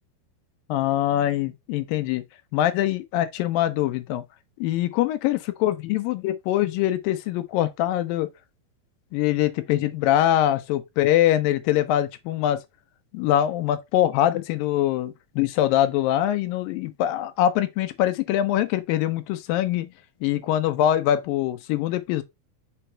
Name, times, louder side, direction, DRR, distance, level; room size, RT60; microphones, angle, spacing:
voice 1, 0.7-2.2 2.5-4.2 4.6-8.3 9.1-12.6 13.1-19.9 20.2-22.2, left 12 dB, 80° left, 2.2 m, -23 dB
5.9 x 3.7 x 4.3 m
omnidirectional pair, 4.4 m